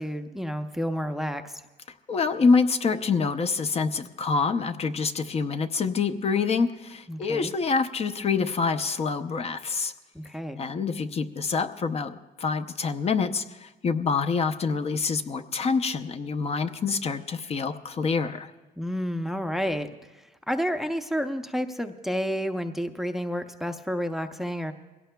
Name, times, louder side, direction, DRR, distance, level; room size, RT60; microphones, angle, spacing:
voice 1, 0.0-1.6 7.1-7.5 10.1-10.6 18.8-19.9 20.5-24.7, equal, ahead, 8 dB, 0.6 m, -30 dB
voice 2, 2.1-9.9 10.6-18.5, left 5 dB, 35° left, 8 dB, 0.7 m, -26 dB
22.0 x 17.0 x 2.3 m, 1.1 s
cardioid pair, 110°, 17 cm